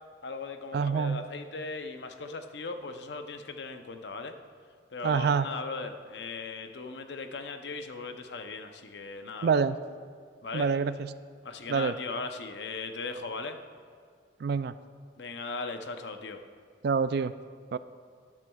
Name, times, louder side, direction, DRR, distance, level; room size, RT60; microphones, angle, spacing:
voice 1, 0.2-4.3 4.9-9.6 10.4-10.7 11.4-13.6 15.2-16.4, left 3 dB, 70° left, 7 dB, 0.7 m, -38 dB
voice 2, 0.7-1.2 5.0-5.5 9.4-9.8 10.5-11.1 11.7-11.9 14.4-14.7 16.8-17.3 17.7-17.8, right 5 dB, 60° right, 14 dB, 0.3 m, -26 dB
13.5 x 10.5 x 2.3 m, 2.1 s
head